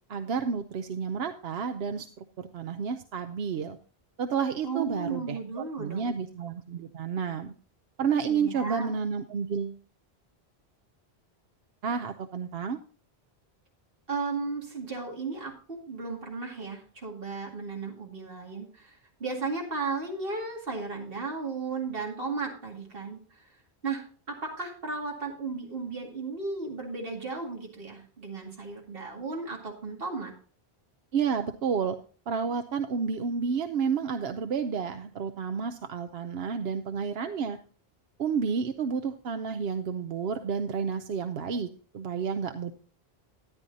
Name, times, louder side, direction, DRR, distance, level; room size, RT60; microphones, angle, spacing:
voice 1, 0.1-3.8 4.2-7.5 8.0-9.8 11.8-12.8 31.1-32.0 32.3-37.6 38.2-42.7, right 6 dB, 80° right, 8 dB, 0.9 m, -30 dB
voice 2, 4.6-6.2 8.3-8.9 14.1-23.6 23.8-30.3, right 4 dB, 60° right, 0 dB, 2.4 m, -35 dB
13.5 x 10.0 x 2.7 m, 0.40 s
omnidirectional pair, 1.0 m